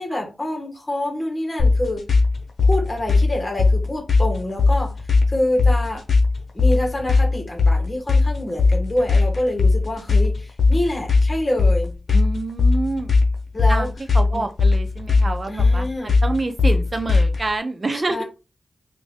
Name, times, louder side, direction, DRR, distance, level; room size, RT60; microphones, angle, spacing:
voice 1, 0.0-2.0 2.6-4.9 5.3-6.0 6.5-12.0 13.5-13.9 14.3-14.4 15.5-16.2 17.9-18.2, left 1 dB, 25° left, 1.5 m, -26 dB
sound 1, 1.6-17.5, left 3 dB, 70° left, 0.8 m, -18 dB
voice 2, 12.1-13.1 13.7-18.2, right 2 dB, 40° right, 0.7 m, -27 dB
3.1 x 2.5 x 3.5 m
wide cardioid pair, 75°, 0 cm